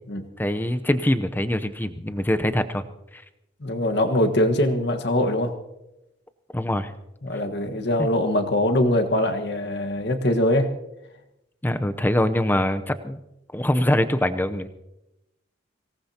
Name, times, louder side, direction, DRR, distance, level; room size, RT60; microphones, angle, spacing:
voice 1, 0.4-2.8 3.1-3.2 6.5-6.9 8.0-8.1 11.6-13.2 13.5-14.7, left 1 dB, 10° left, 9 dB, 0.7 m, -23 dB
voice 2, 3.6-5.5 7.2-10.7, left 1 dB, 60° left, 5 dB, 1.4 m, -22 dB
24.5 x 18.0 x 2.9 m, 0.92 s
head